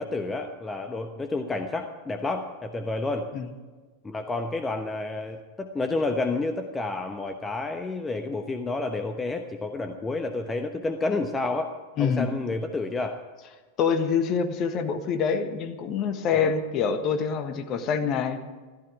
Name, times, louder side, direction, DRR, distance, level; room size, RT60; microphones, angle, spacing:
voice 1, 0.0-3.3 4.0-13.2 16.3-16.5, left 3 dB, 15° left, 6 dB, 1.1 m, -30 dB
voice 2, 12.0-12.3 13.8-18.4, left 6 dB, 35° left, 7 dB, 1.5 m, -26 dB
15.0 x 15.0 x 4.7 m, 1.4 s
figure-of-eight pair, 90°, 0 cm